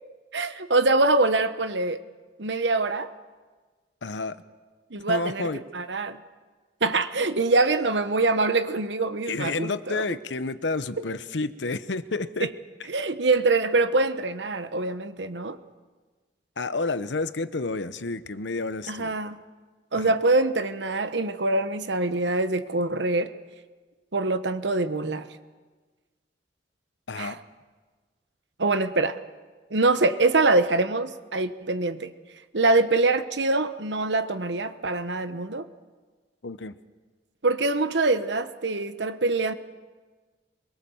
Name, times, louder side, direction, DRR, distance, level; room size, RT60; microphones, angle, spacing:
voice 1, 0.3-2.0 2.4-3.1 4.9-5.5 5.7-6.2 6.8-10.0 12.4-12.5 12.9-15.6 18.9-19.4 19.9-23.3 24.1-25.3 27.2-27.4 28.6-29.2 29.7-32.1 32.5-35.7 37.4-39.5, right 3 dB, 80° right, 11 dB, 1.2 m, -24 dB
voice 2, 4.0-4.4 5.1-5.6 9.3-12.5 16.6-19.2 19.9-20.2 27.1-27.4 36.4-36.7, left 3 dB, 85° left, 12 dB, 0.9 m, -30 dB
23.5 x 22.5 x 7.2 m, 1.4 s
head